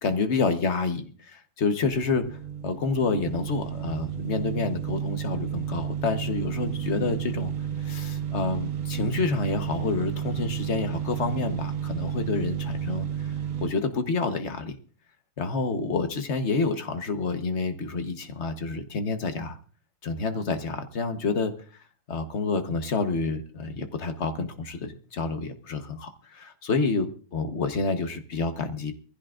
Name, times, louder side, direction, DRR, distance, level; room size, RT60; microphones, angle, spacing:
voice 1, 0.0-7.5 7.8-13.3 13.6-14.7 15.4-19.6 20.0-21.5 22.1-28.9, left 4 dB, 40° left, 8 dB, 1.1 m, -28 dB
sound 1, 1.8-13.7, right 9 dB, 75° right, 2.2 m, -32 dB
23.0 x 15.5 x 2.5 m, 0.41 s
omnidirectional pair, 2.2 m